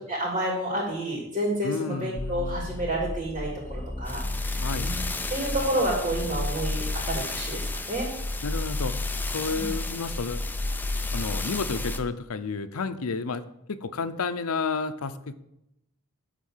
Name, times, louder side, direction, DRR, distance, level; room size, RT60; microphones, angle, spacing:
voice 1, 0.0-8.1 9.5-9.7, right 1 dB, 30° right, -2 dB, 2.6 m, -30 dB
voice 2, 1.6-2.8 4.6-5.0 8.4-8.9 9.3-10.4 11.1-13.4 13.7-15.3, left 4 dB, 75° left, 10 dB, 0.6 m, -31 dB
sound 1, 2.2-12.0, left 2 dB, 10° left, 0.4 m, -31 dB
11.5 x 3.8 x 7.3 m, 0.83 s
head